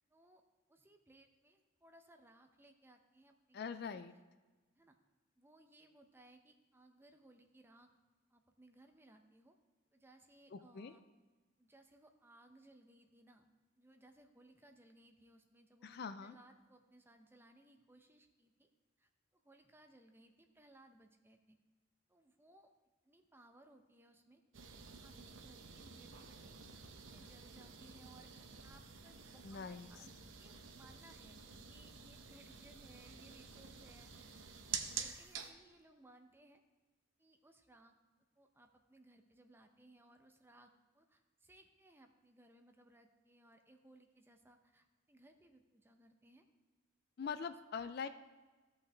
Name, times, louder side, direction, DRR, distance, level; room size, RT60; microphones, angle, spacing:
voice 1, 0.1-0.4 0.7-4.0 4.7-5.0 5.4-7.9 8.3-9.6 9.9-11.0 11.6-13.5 13.8-18.7 19.0-21.6 22.1-22.7 23.0-24.4 24.9-26.6 26.9-30.1 30.4-36.6 37.2-38.0 38.4-46.5 47.2-47.8, right 1 dB, 10° right, 5 dB, 0.6 m, -64 dB
voice 2, 3.5-4.1 10.5-11.0 15.8-16.4 29.4-29.9 47.2-48.1, left 6 dB, 50° left, 10 dB, 0.4 m, -43 dB
sound 1, 24.5-35.5, right 6 dB, 75° right, 0.7 m, -49 dB
14.0 x 5.6 x 3.3 m, 1.3 s
head